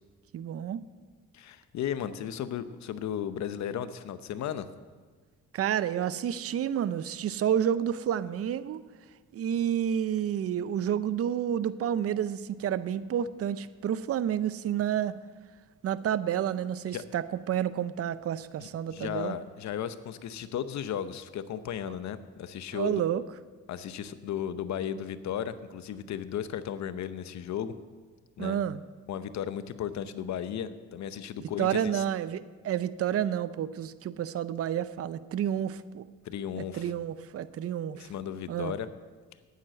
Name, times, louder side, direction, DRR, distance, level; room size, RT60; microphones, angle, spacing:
voice 1, 0.3-0.8 5.5-8.8 9.3-15.1 15.8-19.4 22.7-23.2 28.4-28.8 31.6-36.0 36.6-38.1 38.5-38.8, right 9 dB, 50° right, 15 dB, 0.6 m, -30 dB
voice 2, 1.3-4.7 16.9-17.0 18.6-23.0 23.7-27.7 28.4-28.6 29.1-32.0 36.2-36.9 37.9-38.9, left 9 dB, 65° left, 12 dB, 0.8 m, -35 dB
9.4 x 9.2 x 7.6 m, 1.4 s
cardioid pair, 90°, 30 cm